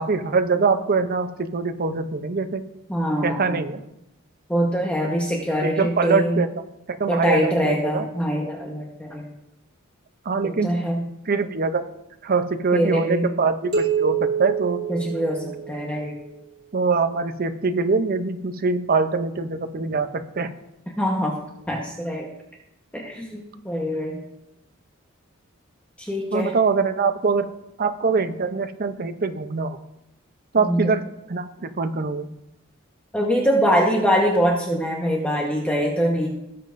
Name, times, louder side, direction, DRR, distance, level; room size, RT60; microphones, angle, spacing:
voice 1, 0.0-2.6 3.2-3.8 5.5-6.5 7.0-8.1 10.3-10.7 11.3-11.8 12.2-14.8 16.7-20.5 26.3-27.5 27.8-29.8 30.5-31.0 31.3-32.3, right 4 dB, 45° right, 9 dB, 0.6 m, -23 dB
voice 2, 2.9-3.6 4.5-6.4 7.1-9.3 10.4-11.0 12.7-13.3 14.9-16.1 21.0-21.3 21.7-22.3 22.9-24.2 26.0-26.5 30.6-30.9 33.1-36.3, equal, 5° left, -2 dB, 1.1 m, -23 dB
sound 1, 13.7-16.1, right 7 dB, 85° right, 2.7 m, -26 dB
17.5 x 7.5 x 2.6 m, 0.87 s
head